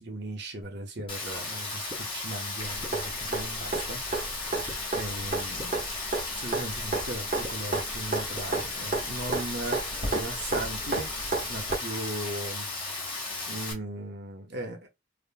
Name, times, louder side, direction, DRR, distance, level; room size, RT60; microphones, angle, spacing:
voice 1, 0.0-4.0 4.9-5.8 6.4-9.8 10.0-11.1 11.5-12.7 13.5-14.9, right 1 dB, 60° right, 1.1 m, -37 dB
sound 1, 1.0-1.1 1.9-2.0 2.8-2.9 3.7-3.8 4.7-4.8 5.6-5.7 6.5-6.6 7.4-7.5 8.4-8.5 9.3-9.4, equal, 20° right, 0.5 m, -39 dB
Rain, 1.1-13.7, left 3 dB, 25° left, 1.3 m, -35 dB
sound 2, 2.6-11.8 13.7-13.8, right 3 dB, 45° right, 1.3 m, -33 dB
3.6 x 3.1 x 2.3 m
head